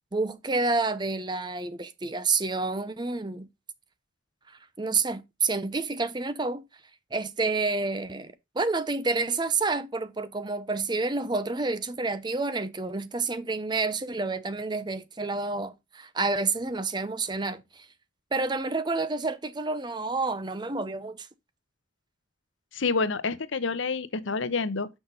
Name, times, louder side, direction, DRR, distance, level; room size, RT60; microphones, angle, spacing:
voice 1, 0.1-3.5 4.5-6.6 7.1-17.9 18.3-21.3, right 3 dB, 20° right, 0.5 m, -29 dB
voice 2, 22.7-24.9, left 4 dB, 70° left, 0.7 m, -28 dB
6.2 x 5.9 x 5.2 m
head